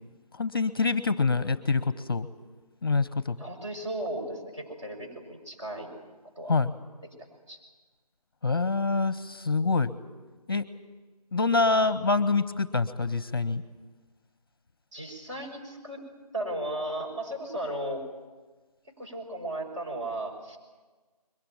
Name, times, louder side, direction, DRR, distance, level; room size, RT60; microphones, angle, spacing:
voice 1, 0.3-2.3 2.8-3.4 6.5-6.7 8.4-9.9 10.5-10.6 11.3-13.6, left 4 dB, 35° left, 15 dB, 0.8 m, -25 dB
voice 2, 3.4-5.9 6.4-6.6 7.5-7.6 14.9-16.0 16.3-18.0 19.0-20.6, right 1 dB, 45° right, 2 dB, 6.5 m, -35 dB
22.5 x 19.5 x 9.3 m, 1.3 s
figure-of-eight pair, 165°, 21 cm